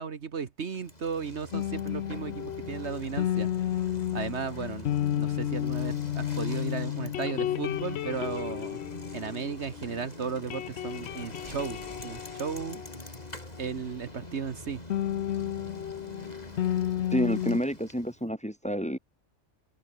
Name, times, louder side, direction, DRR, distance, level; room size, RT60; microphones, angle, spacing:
voice 1, 0.0-3.5 4.1-8.8 9.1-12.8 13.6-14.8, right 6 dB, 60° right, 1.5 m, -35 dB
Bicycle, 0.7-18.2, left 1 dB, 30° left, 5.3 m, -44 dB
sound 1, 1.5-10.0 10.3-13.7 14.9-17.6, left 11 dB, 65° left, 0.8 m, -32 dB
voice 2, 17.1-19.0, equal, 5° left, 2.1 m, -29 dB
omnidirectional pair, 1.3 m